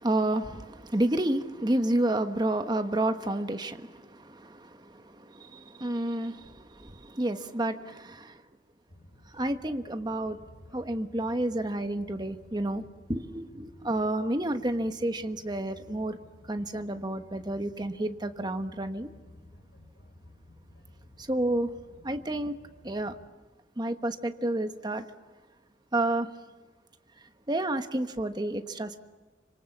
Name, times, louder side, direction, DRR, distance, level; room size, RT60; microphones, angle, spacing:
voice 1, 0.0-8.4 9.3-10.4 10.7-12.8 13.1-16.2 16.5-19.1 21.2-21.7 22.0-22.6 22.8-23.1 23.8-25.0 25.9-26.3 27.5-29.0, right 1 dB, 25° right, 8 dB, 1.2 m, -30 dB
sound 1, 8.9-23.3, left 1 dB, 60° left, 3.7 m, -54 dB
26.5 x 25.5 x 7.2 m, 1.3 s
head